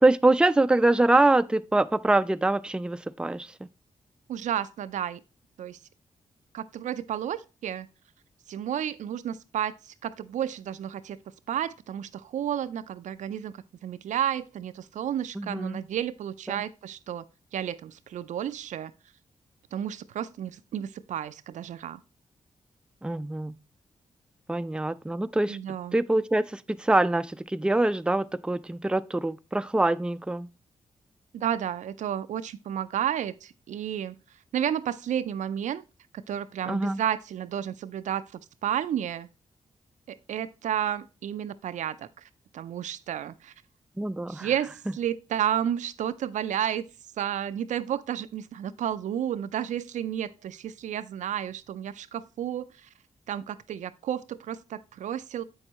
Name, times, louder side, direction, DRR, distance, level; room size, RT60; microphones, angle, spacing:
voice 1, 0.0-3.5 15.4-15.8 16.5-16.6 23.0-23.6 24.5-25.6 25.9-30.5 36.7-37.0 44.0-44.5, right 2 dB, 5° right, 0.4 m, -24 dB
voice 2, 4.3-5.2 5.6-5.8 6.5-7.9 8.5-11.2 11.5-13.5 13.8-17.2 17.5-18.9 19.7-22.0 25.5-26.0 31.3-34.2 34.5-35.8 36.1-39.3 40.1-42.1 42.5-43.5 44.3-46.8 47.2-52.9 53.3-55.4, right 10 dB, 80° right, 0.4 m, -31 dB
7.7 x 6.3 x 2.9 m
supercardioid pair, 50°, 13 cm